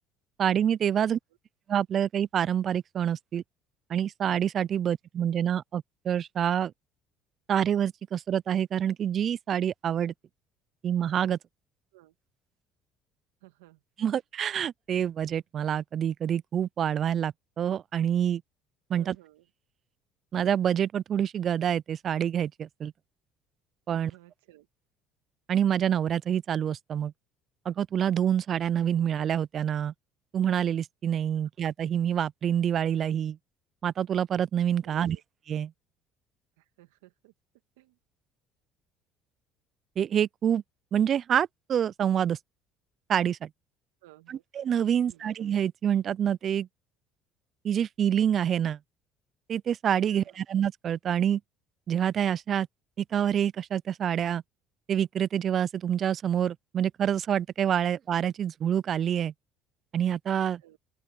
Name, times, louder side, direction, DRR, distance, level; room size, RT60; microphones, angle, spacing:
voice 1, 0.4-1.2 1.7-3.4 3.9-6.7 7.5-10.1 10.8-11.4 14.0-18.4 18.9-19.2 20.3-22.9 23.9-24.1 25.5-27.1 27.7-29.9 30.3-33.4 33.8-35.2 35.5-35.7 40.0-40.6 40.9-42.4 43.1-43.5 44.3-46.7 47.6-48.8 49.5-51.4 51.9-52.7 53.0-54.4 54.9-59.3 59.9-60.6, right 9 dB, 50° right, 0.5 m, -27 dB
voice 2, 13.4-14.1 18.9-19.5 23.9-24.7 34.8-35.2 36.6-37.3 37.8-38.0 44.0-44.4 44.9-45.3 50.1-50.4 60.6-60.8, right 18 dB, 90° right, 1.8 m, -56 dB
open air
supercardioid pair, 80°, 0 cm